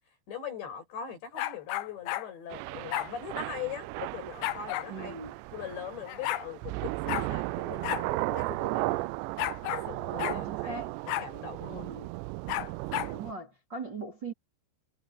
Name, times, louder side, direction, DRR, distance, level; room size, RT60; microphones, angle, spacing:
voice 1, 0.3-5.2 5.5-9.1 9.7-10.9 11.2-11.9, left 7 dB, 70° left, 9.2 m, -41 dB
sound 1, 1.3-2.3 2.9-3.1 4.4-4.9 5.8-5.9 6.1-6.5 7.1-7.3 7.8-8.1 8.4-8.5 9.4-9.9 10.2-10.4 11.1-11.3 12.5-13.1, left 15 dB, 85° left, 3.4 m, -32 dB
Thunder / Rain, 2.5-13.3, right 21 dB, 85° right, 2.7 m, -35 dB
voice 2, 4.9-5.4 10.1-10.9 11.7-12.1 13.1-14.3, right 3 dB, 25° right, 3.9 m, -40 dB
omnidirectional pair, 5.2 m